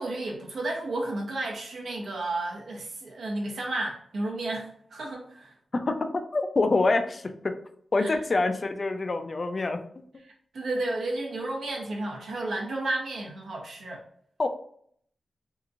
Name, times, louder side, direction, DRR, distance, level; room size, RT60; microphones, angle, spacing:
voice 1, 0.0-5.5 8.0-8.1 10.2-14.0, right 2 dB, 85° right, -2 dB, 0.8 m, -32 dB
voice 2, 5.7-7.6 7.9-9.8 14.4-14.5, left 3 dB, 40° left, 7 dB, 0.3 m, -26 dB
2.8 x 2.4 x 2.5 m, 0.63 s
wide cardioid pair, 115°, 0 cm